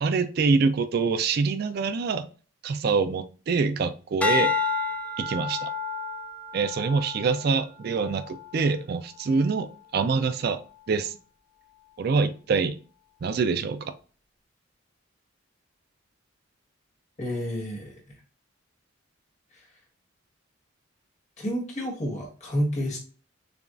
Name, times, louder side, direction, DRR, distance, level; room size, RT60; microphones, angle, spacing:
voice 1, 0.0-2.3 2.6-4.5 5.2-5.7 6.5-10.6 10.9-11.1 12.0-12.8 13.2-13.9, right 4 dB, 50° right, 10 dB, 0.3 m, -25 dB
sound 1, 4.2-8.7 9.2-9.6, left 5 dB, 5° left, 0.5 m, -30 dB
voice 2, 17.2-17.9 21.4-23.0, equal, 35° left, -1 dB, 1.4 m, -29 dB
6.8 x 2.3 x 2.4 m, 0.38 s
head